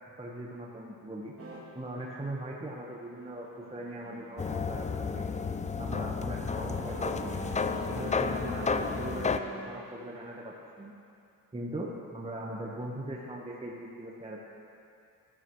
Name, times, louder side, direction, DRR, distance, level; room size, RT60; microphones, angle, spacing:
voice 1, 0.2-1.3 1.7-4.9 5.1-5.3 5.7-7.3 7.9-10.9 11.5-14.4, right 1 dB, 15° right, -3 dB, 1.3 m, -40 dB
sound 1, 1.4-1.6 2.7-9.8, right 3 dB, 35° right, 2.8 m, -44 dB
sound 2, 4.4-9.4, left 5 dB, 20° left, 0.5 m, -32 dB
13.5 x 13.0 x 3.2 m, 2.5 s
supercardioid pair, 70°, 39 cm